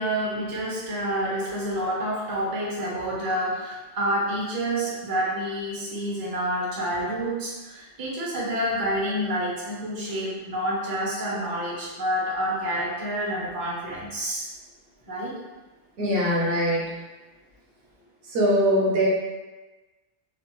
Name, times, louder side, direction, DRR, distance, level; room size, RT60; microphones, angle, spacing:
voice 1, 0.0-14.5 15.1-15.3, equal, 25° right, -6 dB, 0.5 m, -28 dB
voice 2, 16.0-16.9 18.2-19.1, equal, 65° right, -4 dB, 0.8 m, -22 dB
2.8 x 2.1 x 3.0 m, 1.2 s
omnidirectional pair, 1.1 m